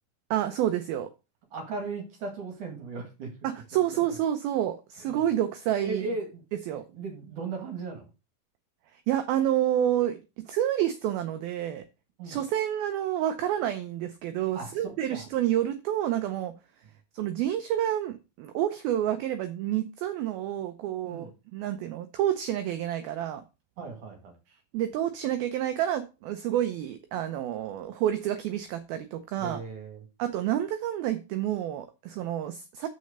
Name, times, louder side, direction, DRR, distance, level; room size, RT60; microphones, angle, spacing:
voice 1, 0.3-1.1 3.4-6.1 6.7-6.8 8.9-11.8 12.2-16.5 17.1-23.4 24.7-29.6 30.2-32.9, right 11 dB, 85° right, 2.1 m, -29 dB
voice 2, 1.5-3.3 3.7-4.0 5.0-5.3 5.8-6.4 6.7-8.1 12.2-12.4 14.5-15.3 21.1-21.3 23.8-24.4 29.4-30.1, right 3 dB, 50° right, 2.8 m, -37 dB
7.0 x 6.3 x 6.6 m
omnidirectional pair, 5.3 m